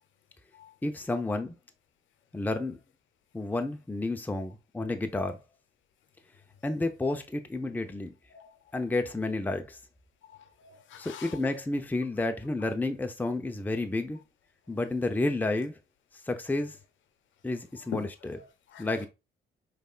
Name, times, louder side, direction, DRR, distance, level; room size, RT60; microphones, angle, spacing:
voice 1, 0.8-1.5 2.3-2.8 3.3-5.4 6.6-8.1 8.7-9.8 11.0-14.2 14.7-15.7 16.3-16.8 17.4-18.3 18.8-19.1, left 2 dB, 10° left, 0.6 m, -31 dB
voice 2, 10.2-11.4 12.6-12.7 17.9-19.1, left 8 dB, 75° left, 0.8 m, -44 dB
5.1 x 3.3 x 2.4 m
cardioid pair, 80°, 20 cm